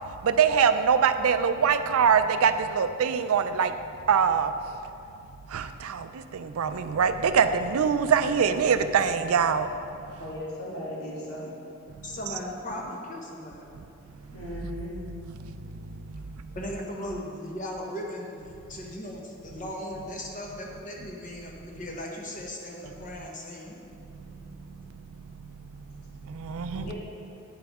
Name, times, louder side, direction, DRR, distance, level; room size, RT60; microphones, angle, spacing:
voice 1, 0.2-3.7 4.1-4.5 5.5-6.1 6.3-9.7 26.3-26.9, right 6 dB, 75° right, 10 dB, 0.4 m, -23 dB
voice 2, 10.2-11.5 14.3-15.0 26.7-26.9, left 1 dB, 80° left, -6 dB, 1.8 m, -37 dB
voice 3, 12.0-13.6 16.5-18.4 18.7-23.8, left 1 dB, 35° left, -1 dB, 0.9 m, -37 dB
8.7 x 7.7 x 3.5 m, 2.6 s
head